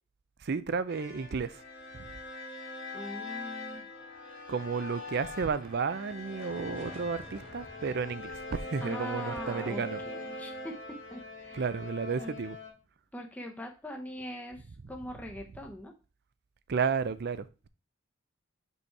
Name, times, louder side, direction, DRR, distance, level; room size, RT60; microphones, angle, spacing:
voice 1, 0.4-1.6 1.9-2.0 4.5-10.0 11.5-12.6 16.7-17.7, right 5 dB, 50° right, 0.5 m, -32 dB
sound 1, 0.9-12.7, left 2 dB, 60° left, 2.2 m, -42 dB
voice 2, 2.9-3.9 8.8-10.8 11.1-11.6 12.2-12.3 13.1-15.9, equal, 10° left, 0.8 m, -42 dB
sound 2, 4.5-12.9, right 1 dB, 30° right, 1.5 m, -55 dB
5.5 x 4.3 x 4.6 m
head